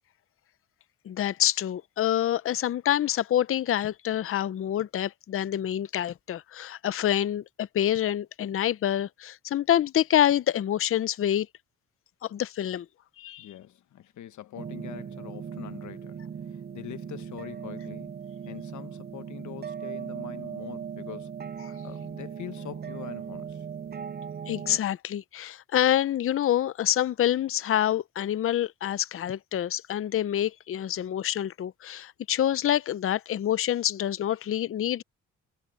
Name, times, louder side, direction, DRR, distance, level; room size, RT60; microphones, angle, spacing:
voice 1, 1.1-11.5 12.3-12.9 13.2-13.5 24.5-35.0, left 11 dB, 45° left, 0.6 m, -27 dB
voice 2, 13.4-16.2 16.7-18.1 18.5-21.3 21.8-23.6, left 12 dB, 70° left, 1.4 m, -43 dB
sound 1, 14.6-24.8, right 7 dB, 35° right, 0.7 m, -38 dB
cardioid pair, 90°, 30 cm